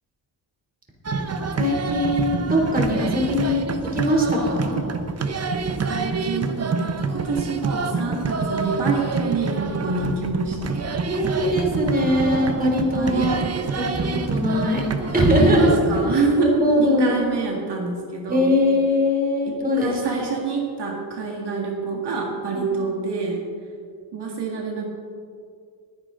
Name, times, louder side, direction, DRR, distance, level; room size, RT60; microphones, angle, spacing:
sound 1, 1.0-16.1, right 4 dB, 35° right, 0.9 m, -26 dB
voice 1, 1.6-3.6 3.9-4.8 11.0-13.4 13.7-14.8 15.1-15.7 16.4-17.2 18.3-20.0 22.5-22.8, left 1 dB, 20° right, -1 dB, 3.2 m, -21 dB
voice 2, 5.9-10.8 12.9-13.6 15.2-18.6 19.5-23.4 24.1-24.9, right 4 dB, 65° right, 0 dB, 2.0 m, -27 dB
19.5 x 10.5 x 3.9 m, 2.3 s
cardioid pair, 105°, 43 cm